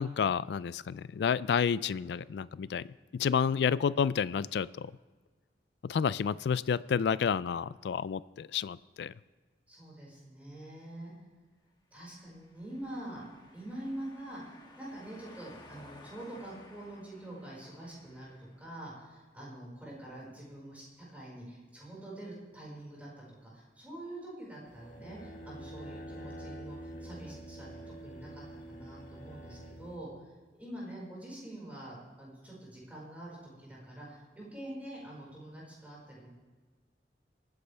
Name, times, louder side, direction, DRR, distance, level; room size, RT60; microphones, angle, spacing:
voice 1, 0.0-2.9 3.1-4.9 5.8-9.1, left 7 dB, 70° left, 19 dB, 0.3 m, -30 dB
voice 2, 9.7-11.1 11.9-13.2 13.5-23.1 23.4-27.7 28.0-28.4 28.7-30.1 30.5-36.3, right 1 dB, 10° right, -5 dB, 5.0 m, -45 dB
sound 1, 12.1-18.9, left 2 dB, 25° left, 1.3 m, -56 dB
sound 2, 24.7-30.0, right 1 dB, 50° left, 1.6 m, -46 dB
25.0 x 9.7 x 3.4 m, 1.4 s
head